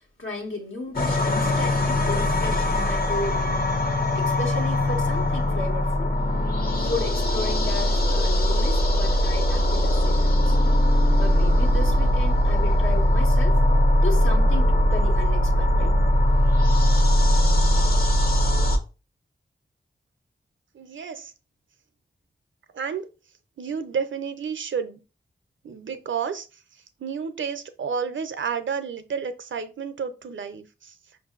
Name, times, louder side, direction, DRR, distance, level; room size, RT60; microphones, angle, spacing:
voice 1, 0.0-3.6 4.1-6.1 6.8-10.6 11.2-13.6 14.0-15.9, left 2 dB, 85° left, 1.4 m, -34 dB
sound 1, 0.9-18.8, left 1 dB, 50° left, 0.9 m, -20 dB
voice 2, 20.7-21.3 22.7-23.1 23.6-25.0 25.6-26.5 27.0-30.9, right 6 dB, 75° right, 0.6 m, -31 dB
5.5 x 2.6 x 2.4 m
cardioid pair, 45°, 20 cm